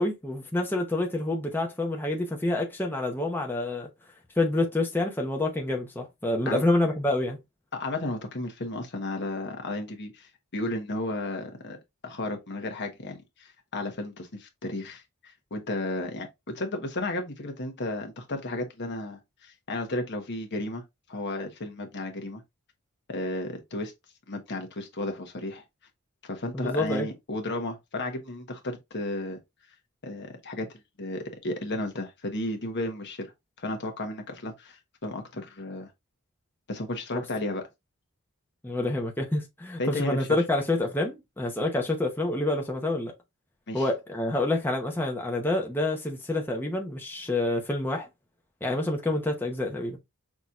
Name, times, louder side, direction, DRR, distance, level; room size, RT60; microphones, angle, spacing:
voice 1, 0.0-3.9 4.4-7.4 26.5-27.1 37.1-37.2 38.6-43.1 43.7-48.1 48.6-50.0, left 2 dB, 10° left, 0.8 m, -27 dB
voice 2, 7.7-11.8 12.0-20.8 21.1-22.4 23.1-23.9 24.3-25.6 26.2-29.4 30.0-30.7 31.0-33.3 33.6-35.9 36.7-37.7 39.8-40.4 43.7-43.9, left 2 dB, 55° left, 1.1 m, -33 dB
6.0 x 2.8 x 2.4 m
head